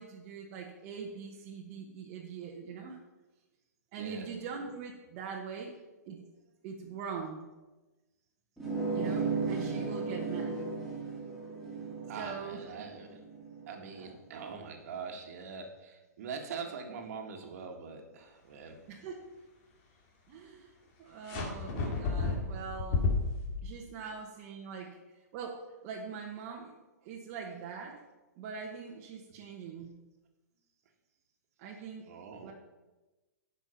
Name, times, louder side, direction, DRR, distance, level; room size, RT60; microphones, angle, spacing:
voice 1, 0.0-3.0 3.9-5.8 6.0-6.2 6.6-7.5 8.9-10.6 12.2-12.6 14.0-14.1 18.9-19.2 20.3-20.7 21.0-23.1 23.6-25.0 25.3-26.7 27.0-28.0 28.4-29.9 31.6-32.1 32.4-32.5, right 6 dB, 40° right, -1 dB, 1.3 m, -42 dB
sound 1, 8.6-13.8, right 4 dB, ahead, 3.0 m, -35 dB
voice 2, 12.1-13.2 13.7-18.8 24.0-24.1 32.1-32.5, right 5 dB, 60° right, 4 dB, 1.7 m, -43 dB
sound 2, 21.3-23.6, left 4 dB, 45° left, 2.2 m, -31 dB
9.9 x 5.6 x 5.8 m, 1.1 s
hypercardioid pair, 130°, 9 cm